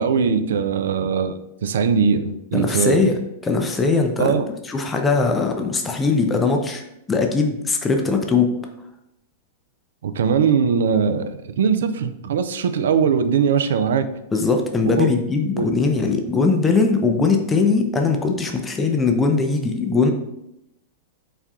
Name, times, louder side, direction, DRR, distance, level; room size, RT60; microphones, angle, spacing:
voice 1, 0.0-3.1 4.2-4.4 10.0-14.1 15.0-15.1 15.6-15.7, right 6 dB, 75° right, 10 dB, 0.3 m, -20 dB
voice 2, 2.5-3.1 3.4-4.4 4.7-6.8 7.1-8.5 14.3-20.1, left 4 dB, 15° left, 4 dB, 0.5 m, -20 dB
4.2 x 2.3 x 3.6 m, 0.83 s
hypercardioid pair, 105°, 0 cm